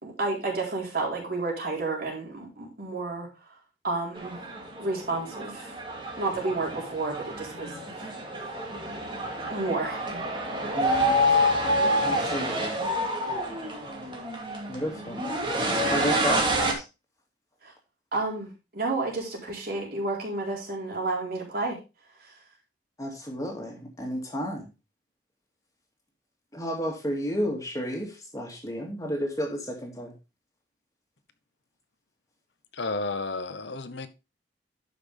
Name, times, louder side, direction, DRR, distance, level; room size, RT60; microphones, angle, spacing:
voice 1, 0.0-3.3 3.8-4.4 4.8-5.7 6.2-8.1 9.5-10.1 16.0-16.4 17.6-17.7 18.1-21.8, right 3 dB, 55° right, 4.2 m, -31 dB
sound 1, 4.2-16.7, equal, 30° right, 2.4 m, -28 dB
voice 2, 10.8-11.2 12.0-12.8 14.7-15.2 15.9-16.4 23.0-24.7 26.5-28.1 28.3-30.1, equal, 20° left, 2.4 m, -31 dB
voice 3, 32.8-34.1, left 3 dB, 75° left, 1.0 m, -32 dB
11.5 x 6.1 x 3.5 m
head